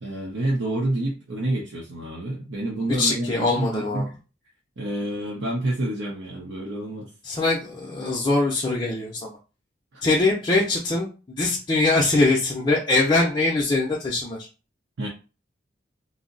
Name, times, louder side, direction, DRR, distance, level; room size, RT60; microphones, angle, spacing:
voice 1, 0.0-4.1 4.8-7.1 9.9-10.0 15.0-15.1, right 1 dB, 90° right, -3 dB, 0.7 m, -28 dB
voice 2, 3.0-4.0 7.2-9.3 10.0-14.4, left 2 dB, 25° left, -4 dB, 0.5 m, -22 dB
2.6 x 2.0 x 3.8 m, 0.33 s
head